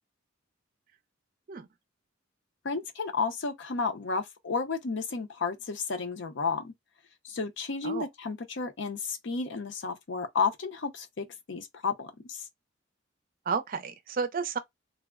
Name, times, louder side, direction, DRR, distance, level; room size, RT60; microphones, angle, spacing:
voice 1, 2.6-6.7 7.2-12.4, left 4 dB, 65° left, 0.6 m, -32 dB
voice 2, 13.5-14.6, right 5 dB, 45° right, 0.5 m, -31 dB
3.3 x 2.1 x 2.3 m
head